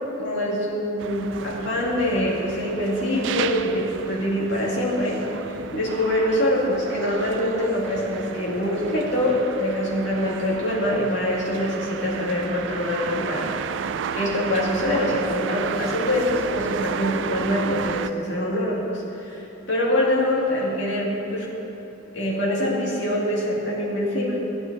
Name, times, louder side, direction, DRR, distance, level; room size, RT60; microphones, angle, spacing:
voice 1, 0.2-5.2 5.7-13.5 14.1-21.5 22.1-24.4, left 1 dB, 60° left, -5 dB, 2.2 m, -24 dB
sound 1, 1.0-18.1, right 7 dB, 65° right, 0.3 m, -33 dB
13.5 x 9.5 x 4.0 m, 3.0 s
head